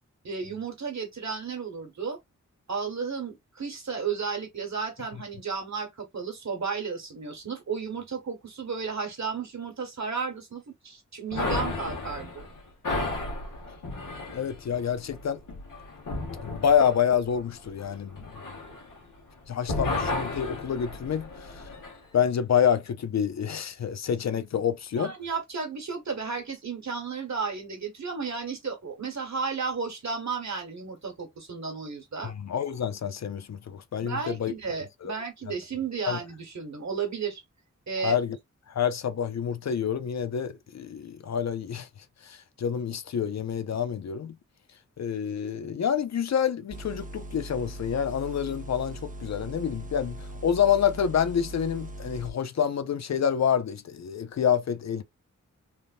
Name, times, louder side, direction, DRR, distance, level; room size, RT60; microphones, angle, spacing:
voice 1, 0.2-2.2 2.7-12.5 25.0-32.3 34.0-37.4 37.9-38.2, right 5 dB, 60° right, 1.4 m, -33 dB
sound 1, 11.3-19.3 19.6-22.0, left 2 dB, 90° left, 1.3 m, -34 dB
voice 2, 14.3-15.4 16.4-18.2 19.5-21.6 22.1-25.1 32.2-34.5 35.0-35.1 36.1-36.2 38.0-38.4 38.7-41.9 42.2-44.4 45.0-55.0, left 8 dB, 60° left, 0.5 m, -27 dB
sound 2, 46.7-52.3, right 1 dB, 25° right, 0.6 m, -40 dB
3.5 x 2.5 x 2.5 m
cardioid pair, 55°, 31 cm